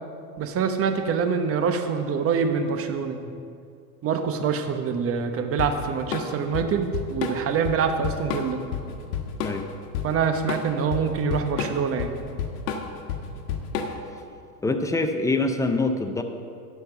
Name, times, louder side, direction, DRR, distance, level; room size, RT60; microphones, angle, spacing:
voice 1, 0.4-3.3 4.0-8.6 10.0-12.2, right 6 dB, 30° right, 7 dB, 1.0 m, -25 dB
Drum kit / Drum, 5.6-14.2, left 7 dB, 75° left, 1.4 m, -30 dB
voice 2, 14.6-16.2, left 2 dB, 5° left, 6 dB, 0.5 m, -24 dB
10.5 x 5.9 x 6.8 m, 2.3 s
supercardioid pair, 115°, 46 cm